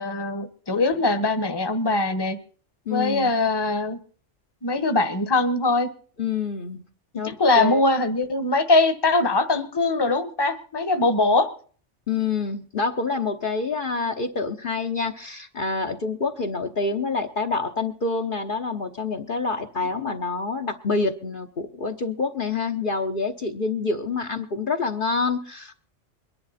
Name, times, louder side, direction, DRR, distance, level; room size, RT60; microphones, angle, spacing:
voice 1, 0.0-2.4 2.9-4.0 4.6-5.9 7.2-11.5, left 2 dB, 20° left, 9 dB, 1.1 m, -22 dB
voice 2, 2.9-3.3 6.2-6.8 7.1-7.8 12.1-25.7, left 4 dB, 50° left, 3 dB, 1.1 m, -27 dB
22.5 x 10.5 x 4.2 m, 0.43 s
omnidirectional pair, 1.2 m